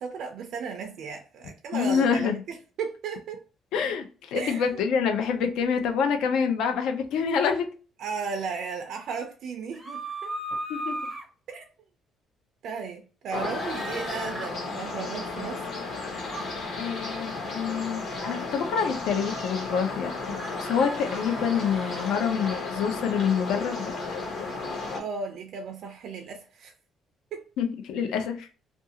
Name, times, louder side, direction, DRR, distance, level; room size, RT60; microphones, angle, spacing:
voice 1, 0.0-3.4 4.3-4.8 8.0-10.3 11.5-11.7 12.6-15.7 25.0-26.7 27.3-27.4, right 5 dB, 60° right, 0.4 m, -35 dB
voice 2, 1.7-2.4 3.7-7.7 10.7-11.1 16.8-23.9 27.6-28.5, left 6 dB, 75° left, 0.5 m, -27 dB
sound 1, 9.7-11.2 13.4-14.5 16.2-16.5 18.1-18.4 20.3-22.2 24.0-24.1, right 1 dB, 5° right, 0.5 m, -37 dB
sound 2, 13.3-25.0, left 3 dB, 45° left, 0.7 m, -34 dB
2.5 x 2.3 x 2.7 m
cardioid pair, 170°, 0 cm